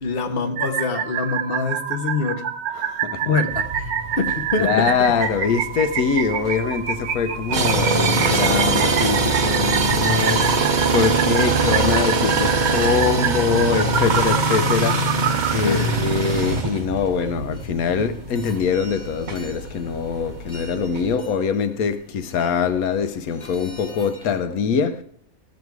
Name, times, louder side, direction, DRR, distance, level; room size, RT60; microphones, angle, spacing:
voice 1, 0.0-2.4 3.2-3.9 4.2-5.1 15.6-15.9, left 4 dB, 45° left, 1.2 m, -25 dB
sound 1, 0.6-15.5, right 9 dB, 85° right, 1.2 m, -27 dB
voice 2, 2.7-3.4 4.6-25.0, left 6 dB, 80° left, 1.2 m, -23 dB
sound 2, 3.5-21.2, right 3 dB, 35° right, 1.0 m, -23 dB
sound 3, 9.2-24.4, equal, 20° left, 3.1 m, -47 dB
14.5 x 7.4 x 4.7 m
omnidirectional pair, 1.5 m